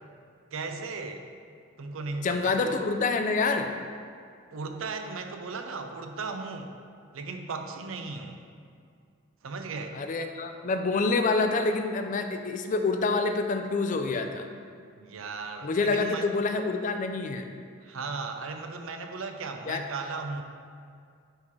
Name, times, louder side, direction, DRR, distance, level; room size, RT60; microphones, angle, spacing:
voice 1, 0.5-1.3 1.8-2.6 4.5-6.7 7.1-8.4 9.4-10.0 15.0-16.3 17.8-20.4, right 4 dB, 85° right, 5 dB, 0.6 m, -36 dB
voice 2, 2.2-3.7 9.9-14.5 15.6-17.5 19.7-19.8, left 3 dB, 40° left, 6 dB, 0.4 m, -27 dB
9.9 x 3.7 x 3.2 m, 2.3 s
head